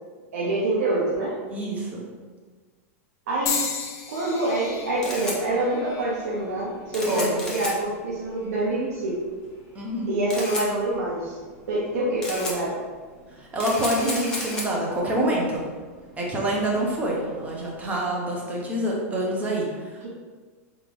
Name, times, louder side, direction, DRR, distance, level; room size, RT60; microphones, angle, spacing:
voice 1, 0.3-1.3 3.3-3.6 4.1-9.2 10.1-11.4 11.7-12.8 20.0-20.1, right 2 dB, 80° right, -6 dB, 0.9 m, -26 dB
voice 2, 1.5-2.0 7.1-7.5 9.7-10.1 13.4-15.6 16.2-20.1, right 1 dB, 20° right, -3 dB, 1.0 m, -26 dB
sound 1, 3.5-7.6 8.3-8.7 9.7-9.9, left 6 dB, 40° left, 0.7 m, -35 dB
Camera, 4.7-18.0, left 1 dB, 10° left, 1.0 m, -36 dB
3.7 x 3.5 x 3.3 m, 1.5 s
supercardioid pair, 135°, 8 cm